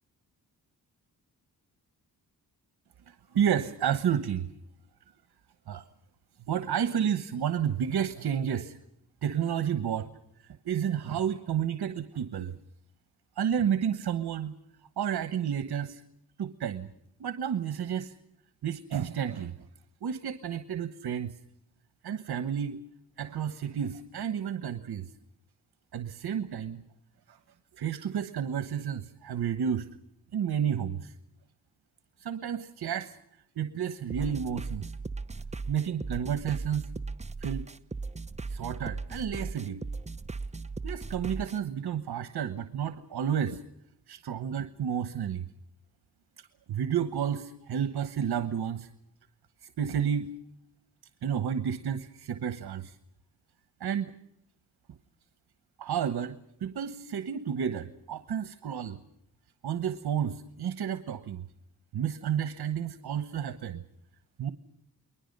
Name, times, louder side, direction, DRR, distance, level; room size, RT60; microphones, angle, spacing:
voice 1, 3.1-4.5 5.7-5.9 6.5-8.8 9.2-10.1 10.4-12.5 13.4-14.5 15.0-16.0 16.4-16.9 17.2-18.1 18.6-19.6 20.0-21.3 22.0-22.8 23.2-25.1 25.9-26.8 27.3-27.4 27.7-29.9 30.3-31.1 32.2-33.2 33.6-34.9 35.7-36.9 37.4-37.7 38.5-39.8 40.8-43.6 44.1-45.4 46.4-48.9 49.6-50.3 51.2-53.0 53.8-54.1 55.8-59.0 59.6-61.5 61.9-63.8 64.4-64.5, right 8 dB, 75° right, 10 dB, 1.2 m, -31 dB
sound 1, 34.1-41.6, right 3 dB, 20° right, 0.8 m, -37 dB
30.0 x 21.5 x 5.4 m, 0.74 s
cardioid pair, 85°, 38 cm